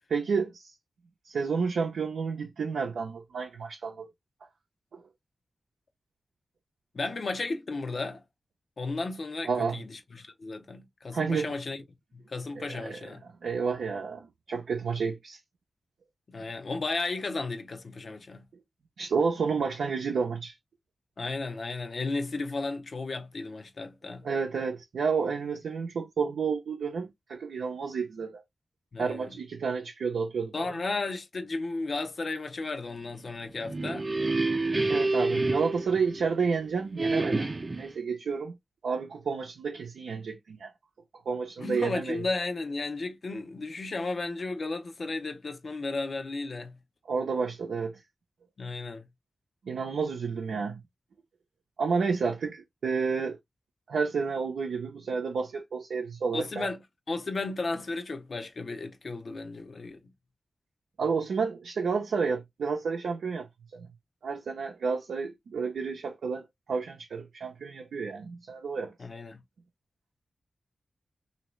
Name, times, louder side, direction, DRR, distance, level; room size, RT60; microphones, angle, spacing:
voice 1, 0.1-0.7 1.2-4.1 4.9-5.0 9.4-9.8 11.1-11.6 12.6-13.1 13.4-15.4 19.0-20.5 24.2-28.4 29.0-30.8 34.9-37.5 37.8-38.6 38.8-40.7 41.3-42.2 47.1-48.0 49.6-50.8 51.8-53.4 53.9-56.7 61.0-63.5 63.7-63.9 64.2-68.9, right 5 dB, 90° right, 0.6 m, -30 dB
voice 2, 6.9-8.2 8.8-11.8 12.1-13.2 16.3-18.5 21.2-24.3 28.9-29.4 30.5-34.1 41.6-46.8 48.6-49.1 56.3-56.8 57.1-60.0 69.0-69.4, left 3 dB, 65° left, 0.8 m, -34 dB
sound 1, 33.4-36.5 37.0-37.9, right 2 dB, 40° right, 0.6 m, -28 dB
3.0 x 2.8 x 3.0 m
cardioid pair, 45°, 0 cm